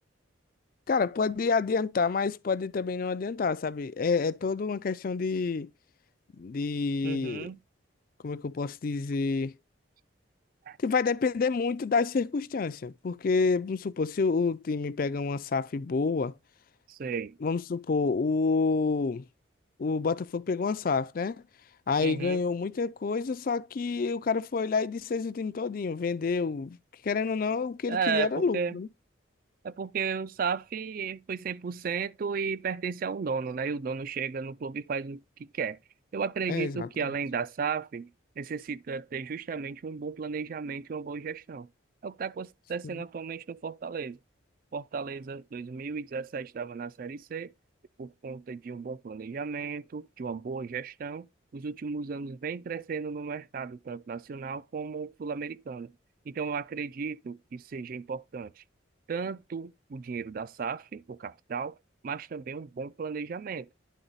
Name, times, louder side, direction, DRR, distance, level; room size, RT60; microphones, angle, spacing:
voice 1, 0.9-5.7 6.4-7.5 8.2-9.5 10.8-16.3 17.4-19.2 19.8-21.4 21.9-26.8 27.0-28.9 36.5-36.9 42.8-43.0, left 4 dB, 45° left, 0.4 m, -28 dB
voice 2, 7.0-7.6 10.7-10.8 16.9-17.4 22.0-22.4 27.9-28.8 29.6-35.8 36.1-41.7 42.0-44.2 44.7-47.5 48.0-51.3 51.5-55.9 56.3-58.6 59.1-61.8 62.0-63.7, right 5 dB, 45° right, 0.3 m, -34 dB
10.0 x 3.9 x 3.9 m
head